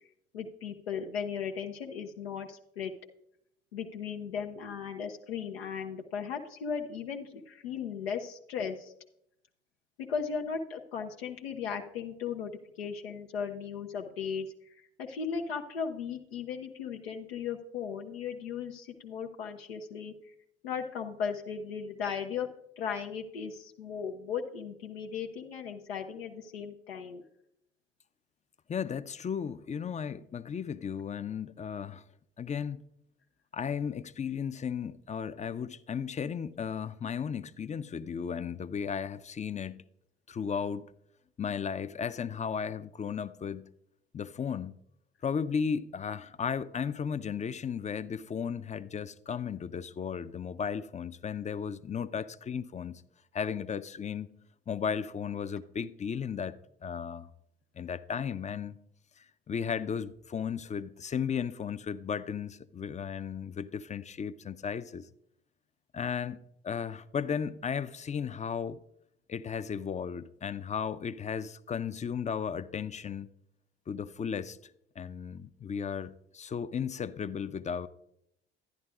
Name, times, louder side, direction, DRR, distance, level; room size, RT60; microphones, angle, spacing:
voice 1, 0.3-2.9 3.7-8.9 10.1-12.5 12.8-20.1 20.6-22.5 22.8-27.2, left 6 dB, 85° left, 0.6 m, -37 dB
voice 2, 28.7-32.0 32.4-32.8 33.5-39.8 40.3-40.9 41.4-43.7 44.1-44.8 45.2-53.0 53.3-54.3 54.7-57.3 57.8-58.8 59.2-65.1 65.9-66.4 66.6-68.8 69.3-73.3 73.9-74.6 75.0-77.9, left 7 dB, 25° left, 0.4 m, -35 dB
11.0 x 10.5 x 2.4 m
hypercardioid pair, 50°, 30 cm